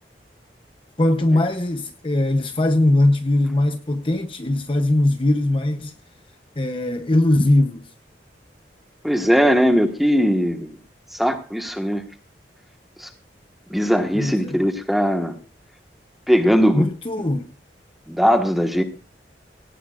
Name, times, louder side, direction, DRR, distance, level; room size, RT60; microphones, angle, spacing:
voice 1, 1.0-5.9 6.6-7.8 14.1-14.6 16.7-17.5, left 1 dB, 30° left, 0.8 m, -20 dB
voice 2, 9.0-10.8 11.2-12.0 13.0-13.1 13.7-15.3 16.3-16.9 18.1-18.8, equal, ahead, 1.4 m, -19 dB
18.0 x 17.0 x 2.5 m
head